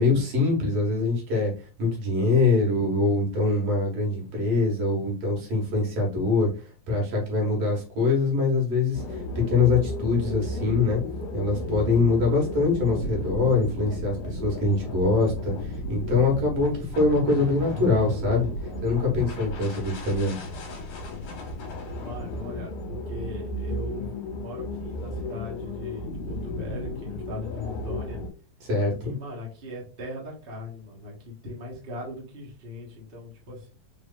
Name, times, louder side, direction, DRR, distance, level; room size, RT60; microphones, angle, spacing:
voice 1, 0.0-1.5 1.8-11.0 11.3-18.5 18.8-20.4 28.6-29.1, left 3 dB, 65° right, 0 dB, 2.4 m, -24 dB
sound 1, 8.9-28.3, left 1 dB, 65° left, 2.2 m, -34 dB
voice 2, 22.0-28.2 29.0-33.7, left 2 dB, 35° right, -3 dB, 0.8 m, -39 dB
4.9 x 3.3 x 2.4 m, 0.34 s
omnidirectional pair, 3.3 m